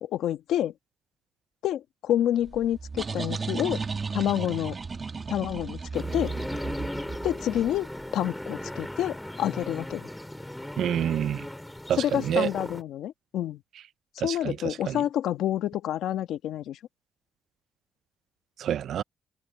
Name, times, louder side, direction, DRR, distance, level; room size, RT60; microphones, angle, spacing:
voice 1, 0.0-0.7 1.6-3.8 4.1-4.8 5.3-6.3 7.2-10.1 12.0-13.6 14.2-16.8, left 11 dB, 80° left, 1.3 m, -28 dB
sound 1, 2.5-8.0, right 4 dB, 35° right, 2.3 m, -34 dB
sound 2, 5.9-12.8, left 1 dB, 5° left, 5.6 m, -37 dB
voice 2, 10.8-11.5 11.9-12.5 14.2-15.0 18.6-19.0, right 10 dB, 70° right, 0.5 m, -28 dB
open air
cardioid pair, 90°, 0 cm